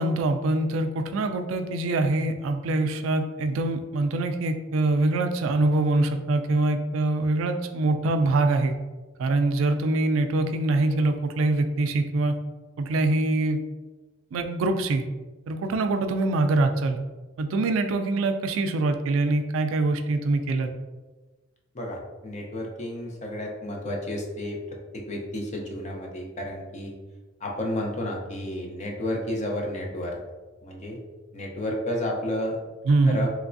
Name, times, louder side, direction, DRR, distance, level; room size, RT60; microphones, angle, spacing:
voice 1, 0.0-8.7 9.2-12.4 12.8-13.6 14.3-15.0 15.5-17.0 17.4-20.7 32.9-33.3, right 2 dB, 70° right, 8 dB, 0.3 m, -24 dB
voice 2, 21.7-24.6 24.9-26.9 27.4-30.2 30.6-31.0 31.3-32.6 33.1-33.3, left 1 dB, 35° left, 0 dB, 0.6 m, -31 dB
3.3 x 3.1 x 2.5 m, 1.2 s
head